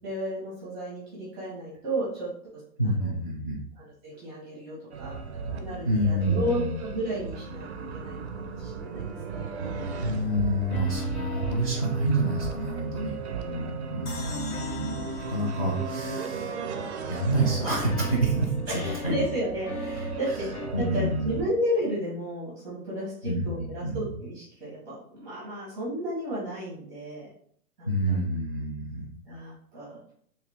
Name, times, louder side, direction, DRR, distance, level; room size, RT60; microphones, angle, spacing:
voice 1, 0.0-2.3 3.0-3.1 3.8-9.5 13.2-13.7 18.7-27.3 27.8-28.2 29.3-30.0, equal, 10° right, -7 dB, 0.7 m, -33 dB
voice 2, 2.8-3.6 5.8-6.7 10.0-15.0 15.3-16.6 17.1-19.2 20.7-21.3 23.2-23.5 23.8-24.1 27.9-29.1, right 1 dB, 25° left, -7 dB, 0.4 m, -28 dB
sound 1, 4.9-21.4, right 5 dB, 45° right, 0.4 m, -36 dB
sound 2, 10.7-13.4 14.1-17.1 17.5-20.7, left 5 dB, 65° left, 0.9 m, -41 dB
sound 3, 14.1-17.4, left 3 dB, 85° left, 1.3 m, -45 dB
3.1 x 2.8 x 3.4 m, 0.63 s
hypercardioid pair, 160°, 46 cm